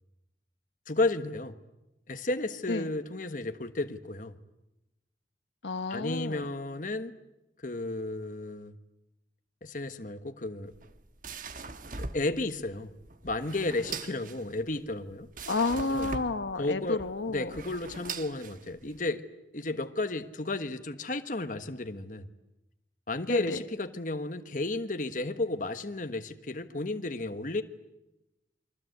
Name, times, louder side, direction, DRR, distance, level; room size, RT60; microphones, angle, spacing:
voice 1, 0.9-1.5 2.1-4.3 5.9-7.2 7.6-8.7 9.6-10.7 12.1-12.9 13.2-15.3 15.9-16.1 16.6-17.0 17.3-19.2 19.5-22.3 23.1-27.6, left 2 dB, 45° left, 9 dB, 1.4 m, -33 dB
voice 2, 5.6-6.5 15.5-17.5 23.3-23.6, left 3 dB, 85° left, 10 dB, 1.2 m, -31 dB
sound 1, 10.7-19.0, right 4 dB, 50° right, 1.3 m, -42 dB
29.5 x 24.0 x 8.1 m, 0.95 s
head